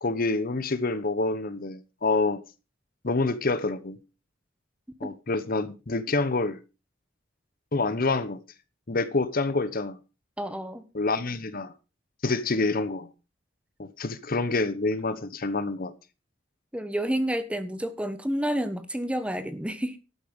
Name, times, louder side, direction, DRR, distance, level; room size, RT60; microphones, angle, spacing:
voice 1, 0.0-2.4 3.0-4.0 5.0-6.6 7.7-8.4 8.9-10.0 10.9-11.7 12.2-13.1 13.8-15.9, left 3 dB, 45° left, 1.0 m, -27 dB
voice 2, 10.4-10.8 16.7-20.0, equal, 5° right, 1.2 m, -29 dB
12.5 x 8.5 x 5.3 m
head